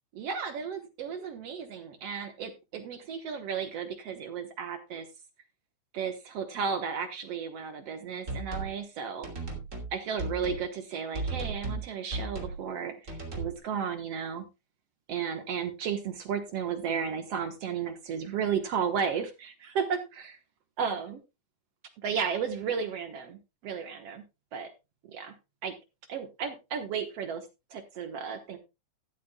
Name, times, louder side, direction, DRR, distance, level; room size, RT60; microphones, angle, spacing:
voice 1, 0.2-5.1 5.9-9.3 9.9-14.4 15.1-20.4 20.8-21.2 22.0-24.2 24.5-24.7 25.1-25.3 25.6-25.8 26.1-28.6, right 7 dB, 60° right, 8 dB, 2.0 m, -34 dB
sound 1, 8.3-8.8 9.2-9.9 10.2-10.6 11.1-11.8 12.1-12.6 13.1-13.6, right 3 dB, 25° right, 2.8 m, -35 dB
13.5 x 12.0 x 2.2 m, 0.25 s
omnidirectional pair, 3.7 m